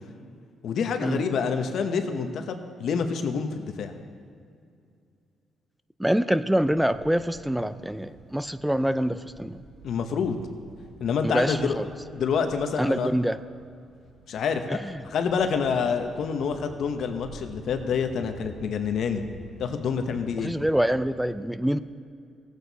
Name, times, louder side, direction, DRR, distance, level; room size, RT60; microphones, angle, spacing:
voice 1, 0.6-3.9 9.8-10.4 11.0-11.8 12.1-13.1 14.3-14.8 15.0-19.2 19.6-20.5, left 6 dB, 65° left, 6 dB, 1.0 m, -27 dB
voice 2, 6.0-9.6 11.2-11.9 12.8-13.4 14.7-15.1 20.4-21.8, equal, 5° right, 13 dB, 0.4 m, -25 dB
sound 1, 6.5-21.2, right 2 dB, 90° right, 3.1 m, -49 dB
17.0 x 8.3 x 4.1 m, 2.4 s
cardioid pair, 90°, 0 cm